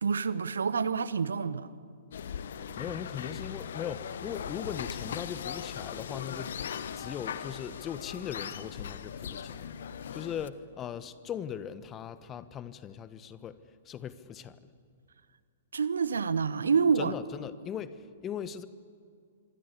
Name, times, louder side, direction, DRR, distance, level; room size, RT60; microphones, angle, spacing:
voice 1, 0.0-1.7 15.7-17.1, right 6 dB, 75° right, 1.1 m, -27 dB
sound 1, 2.1-10.5, left 8 dB, 60° left, 1.2 m, -39 dB
voice 2, 2.8-6.6 6.9-9.6 10.1-13.6 13.8-14.6 17.0-18.7, left 9 dB, 25° left, 1.2 m, -39 dB
26.0 x 24.5 x 8.4 m
figure-of-eight pair, 115°, 0 cm